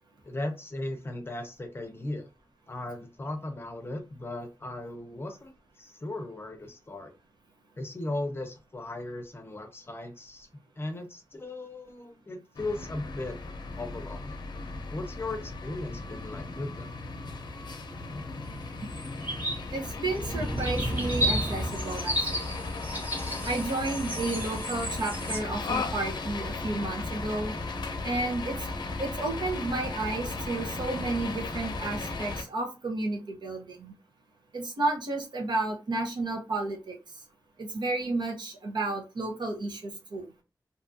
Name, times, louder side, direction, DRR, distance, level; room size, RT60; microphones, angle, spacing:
voice 1, 0.2-2.3 2.7-7.1 7.8-10.5 10.8-13.4 13.8-14.4 14.9-16.9, left 2 dB, 30° left, 6 dB, 0.5 m, -37 dB
sound 1, 12.5-32.4, left 3 dB, 80° left, 0.6 m, -36 dB
sound 2, 18.9-19.6 20.0-25.4, equal, 25° right, 0.8 m, -32 dB
voice 2, 19.7-22.6 23.4-27.5 28.0-28.7 29.0-33.9 34.5-37.2 37.6-40.3, right 2 dB, 85° right, 2 dB, 0.9 m, -32 dB
2.7 x 2.3 x 2.6 m, 0.29 s
wide cardioid pair, 130°, 7 cm